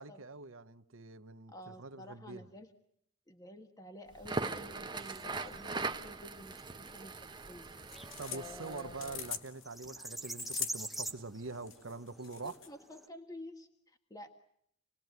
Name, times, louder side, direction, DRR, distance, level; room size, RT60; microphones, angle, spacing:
voice 1, 0.0-2.4 8.2-12.6, right 3 dB, 70° right, 1.0 m, -45 dB
voice 2, 1.5-2.7 3.3-7.7 8.3-9.2 12.4-14.3, left 1 dB, 20° left, 1.6 m, -50 dB
Crackle, 4.1-9.4, right 3 dB, 20° right, 1.1 m, -41 dB
sound 1, 5.0-13.1, right 1 dB, ahead, 1.2 m, -47 dB
sound 2, 7.7-12.7, left 8 dB, 65° left, 2.1 m, -44 dB
28.5 x 20.5 x 9.4 m
head